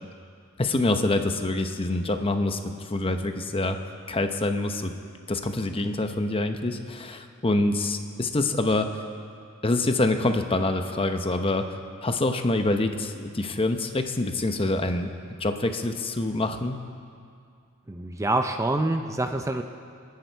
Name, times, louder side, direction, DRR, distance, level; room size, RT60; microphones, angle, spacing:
voice 1, 0.6-3.8 4.1-4.9 5.3-8.9 9.6-11.7 12.0-15.1 15.4-16.8, left 2 dB, 25° left, 7 dB, 0.8 m, -26 dB
voice 2, 17.9-19.6, right 2 dB, 15° right, 5 dB, 0.6 m, -26 dB
28.0 x 10.5 x 4.6 m, 2.3 s
head